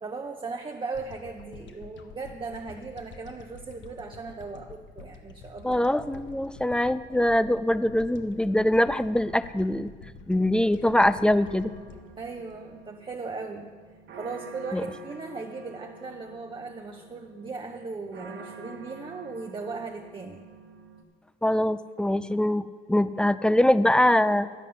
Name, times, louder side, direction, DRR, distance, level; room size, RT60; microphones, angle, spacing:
voice 1, 0.0-5.8 12.2-13.7 14.2-20.5, right 4 dB, 25° right, 3 dB, 0.7 m, -37 dB
sound 1, 0.9-13.4, left 4 dB, 70° left, 1.0 m, -48 dB
voice 2, 5.6-9.9 10.3-11.7 14.7-14.8 21.4-24.5, left 1 dB, 5° left, 14 dB, 0.4 m, -23 dB
sound 2, 11.4-21.0, right 2 dB, 70° right, 1.3 m, -47 dB
10.5 x 9.3 x 5.5 m, 1.5 s
cardioid pair, 90°, 20 cm